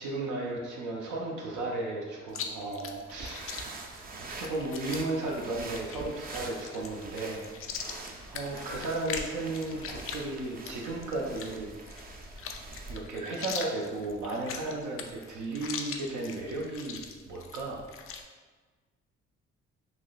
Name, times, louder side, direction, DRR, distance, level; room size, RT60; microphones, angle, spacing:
voice 1, 0.0-3.4 4.2-7.5 7.8-11.7 12.9-17.8, right 2 dB, 75° right, -2 dB, 0.6 m, -35 dB
Chewing mastication, 2.3-18.2, left 6 dB, 45° left, 0.4 m, -42 dB
sound 1, 3.1-13.0, right 3 dB, 30° right, 0.4 m, -44 dB
3.4 x 2.6 x 2.3 m, 1.4 s
supercardioid pair, 55°, 30 cm